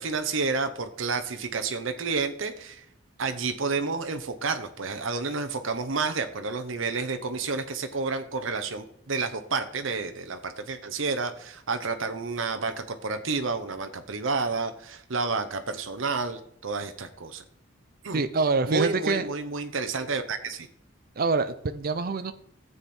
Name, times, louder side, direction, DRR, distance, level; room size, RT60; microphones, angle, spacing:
voice 1, 0.0-2.8 3.2-17.4 18.0-18.2 18.7-20.7, right 4 dB, 80° right, 8 dB, 0.8 m, -30 dB
voice 2, 18.1-19.3 21.2-22.3, right 3 dB, 50° right, 10 dB, 0.6 m, -25 dB
13.5 x 8.0 x 4.3 m, 0.70 s
head